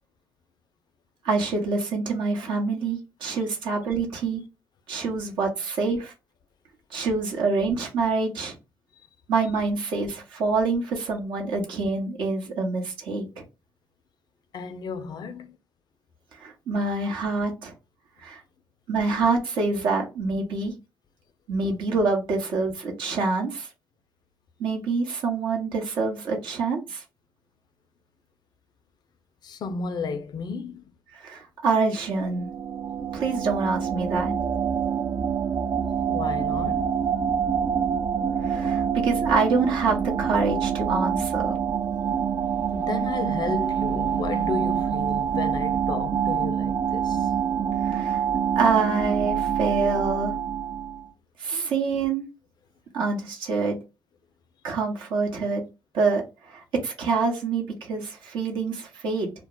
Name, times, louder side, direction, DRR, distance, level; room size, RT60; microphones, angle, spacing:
voice 1, 1.2-4.4 4.9-6.1 6.9-8.5 9.3-13.4 16.4-17.7 18.2-18.4 18.9-20.7 21.5-23.7 24.6-27.0 31.1-32.5 33.1-34.3 38.4-41.6 47.8-48.2 48.6-50.4 51.4-52.3 52.9-53.8 54.6-55.6 55.9-59.3, right 4 dB, 70° right, 0.8 m, -26 dB
voice 2, 14.5-15.6 29.4-30.9 36.1-37.0 42.7-47.3, left 5 dB, 55° left, 0.4 m, -33 dB
sound 1, 32.1-51.1, right 8 dB, 45° right, 0.4 m, -26 dB
2.2 x 2.0 x 3.5 m
hypercardioid pair, 45°, 8 cm